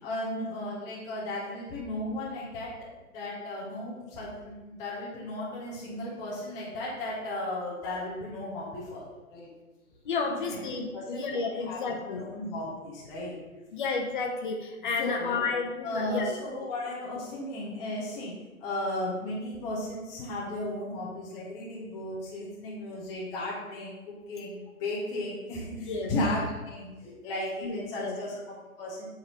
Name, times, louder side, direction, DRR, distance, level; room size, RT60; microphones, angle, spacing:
voice 1, 0.0-2.8 3.1-9.0 9.3-9.5 10.4-10.6 10.9-11.8 12.1-13.3 15.0-15.4 15.8-18.3 18.6-23.9 24.3-29.1, left 1 dB, 10° left, -7 dB, 0.7 m, -35 dB
voice 2, 10.0-12.2 13.7-16.4 25.8-26.1 27.6-28.2, left 4 dB, 35° left, 2 dB, 0.9 m, -31 dB
8.5 x 4.2 x 5.3 m, 1.1 s
figure-of-eight pair, 135°, 44 cm